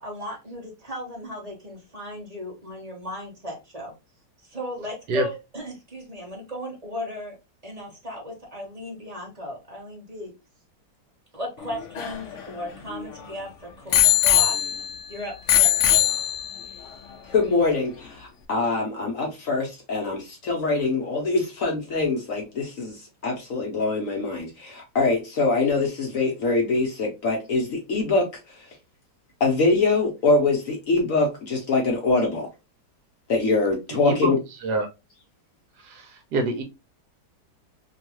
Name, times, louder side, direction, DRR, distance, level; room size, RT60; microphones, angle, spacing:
voice 1, 0.0-3.9 4.5-7.4 7.6-10.3 11.3-14.6 15.1-15.9, equal, 25° right, 1.0 m, -36 dB
Bicycle bell, 11.6-13.3 13.9-15.1 15.5-16.7 17.5-17.6, left 13 dB, 75° left, 0.6 m, -21 dB
voice 2, 17.3-23.0 23.2-28.2 29.4-32.5 33.3-34.4, left 3 dB, 60° left, 1.0 m, -23 dB
voice 3, 33.9-34.3 34.6-34.9 35.8-36.6, right 2 dB, 70° right, 1.1 m, -26 dB
3.0 x 2.3 x 2.8 m
omnidirectional pair, 1.9 m